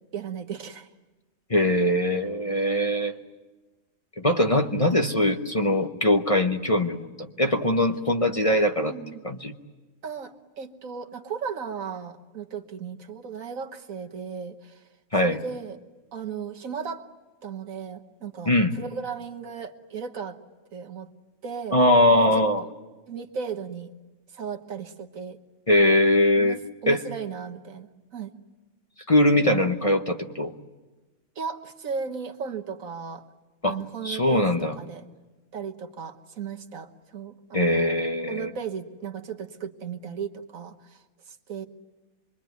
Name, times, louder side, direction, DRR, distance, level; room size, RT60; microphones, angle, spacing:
voice 1, 0.1-0.9 8.9-9.3 10.0-14.8 15.2-15.8 16.1-17.1 17.4-20.4 20.7-21.1 21.4-21.8 22.2-22.4 23.1-23.9 24.3-25.4 26.4-28.3 31.4-33.2 33.6-35.1 35.5-37.9 38.3-41.7, right 6 dB, 75° right, 5 dB, 1.7 m, -36 dB
voice 2, 1.5-3.1 4.2-8.9 9.2-9.5 15.1-15.4 18.5-18.7 21.7-22.6 25.7-26.6 26.9-27.0 29.1-30.5 33.6-33.8 34.0-34.7 37.5-38.5, left 1 dB, 30° left, 5 dB, 0.9 m, -21 dB
26.0 x 22.5 x 9.3 m, 1.2 s
omnidirectional pair, 1.4 m